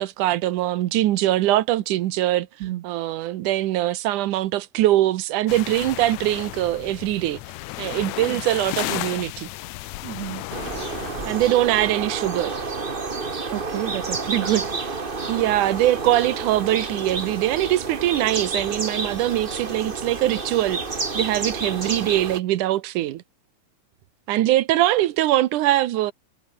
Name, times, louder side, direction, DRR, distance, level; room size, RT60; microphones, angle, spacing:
voice 1, 0.0-7.4 7.8-9.5 11.3-12.6 15.3-23.2 24.3-26.1, right 14 dB, 90° right, 2.5 m, -22 dB
sound 1, 5.5-11.5, left 18 dB, 75° left, 1.8 m, -33 dB
voice 2, 10.0-10.5 13.5-15.0, right 15 dB, 70° right, 2.0 m, -28 dB
sound 2, 10.5-22.4, right 4 dB, 25° right, 1.4 m, -30 dB
omnidirectional pair, 3.5 m